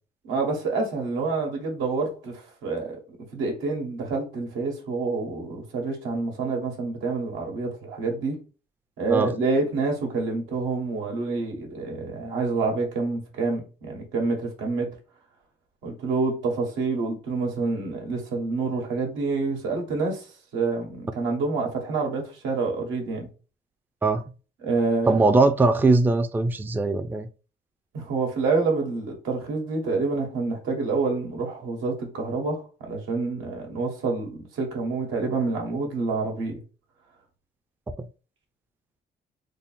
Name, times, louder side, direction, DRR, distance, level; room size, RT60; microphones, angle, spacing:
voice 1, 0.2-3.0 3.3-8.4 9.0-14.9 15.8-20.3 20.5-23.3 24.6-25.2 27.9-36.6, right 3 dB, 90° right, 1.3 m, -27 dB
voice 2, 25.1-27.3, right 3 dB, 10° right, 0.3 m, -20 dB
3.6 x 2.0 x 3.9 m
cardioid pair, 90°, 20 cm